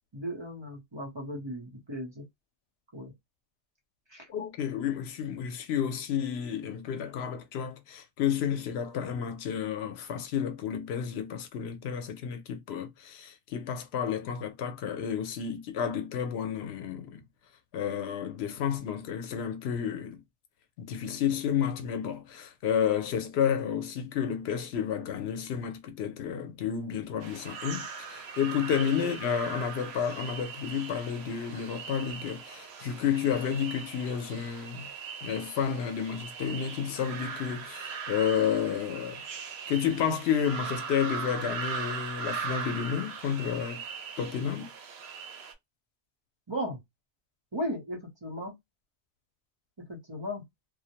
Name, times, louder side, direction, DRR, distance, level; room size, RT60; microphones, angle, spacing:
voice 1, 0.1-2.2 2.9-3.1 4.1-4.2 29.0-29.1 46.5-46.8 47.5-48.5 49.9-50.4, equal, 30° right, 0.7 m, -36 dB
voice 2, 4.3-17.2 17.7-20.2 20.8-34.9 35.2-43.8 44.2-44.7, left 8 dB, 85° left, 0.8 m, -31 dB
sound 1, 27.2-45.5, right 6 dB, 85° right, 0.9 m, -40 dB
2.3 x 2.0 x 2.7 m
omnidirectional pair, 1.1 m